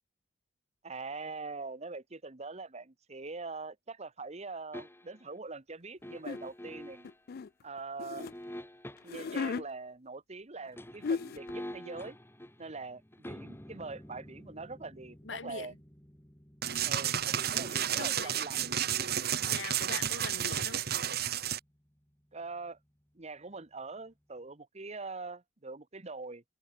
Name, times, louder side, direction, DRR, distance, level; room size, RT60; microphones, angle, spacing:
voice 1, 0.8-7.1 7.6-8.3 9.0-12.2 12.6-15.7 16.8-18.7 22.3-22.8 23.1-26.4, right 3 dB, 35° right, 1.3 m, -43 dB
sound 1, 4.7-5.3 6.0-7.2 8.2-9.4 10.6-21.6 21.9-22.0, equal, 15° left, 3.0 m, -49 dB
sound 2, 6.2-6.4 7.0-8.3 9.0-9.6 10.7-10.8 11.0-11.5, left 5 dB, 55° left, 0.4 m, -35 dB
voice 2, 15.2-15.8 18.0-18.5 19.4-20.8, left 4 dB, 85° left, 2.1 m, -42 dB
sound 3, 16.6-21.6, right 10 dB, 60° right, 1.7 m, -31 dB
head